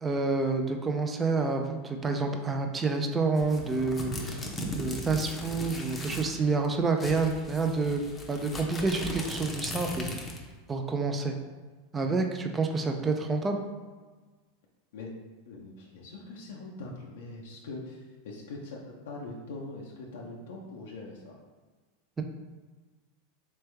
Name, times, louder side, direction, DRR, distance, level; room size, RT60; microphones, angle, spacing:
voice 1, 0.0-4.5 4.7-8.0 8.3-10.0 10.7-11.3 11.9-13.6, right 3 dB, 20° right, 4 dB, 0.4 m, -28 dB
sound 1, 3.4-6.4 6.6-6.7 7.0-10.5, left 1 dB, 20° left, 0.7 m, -38 dB
voice 2, 15.5-18.8 19.0-21.4, left 2 dB, 80° left, -2 dB, 0.6 m, -42 dB
3.3 x 3.2 x 3.3 m, 1.3 s
hypercardioid pair, 115°, 0 cm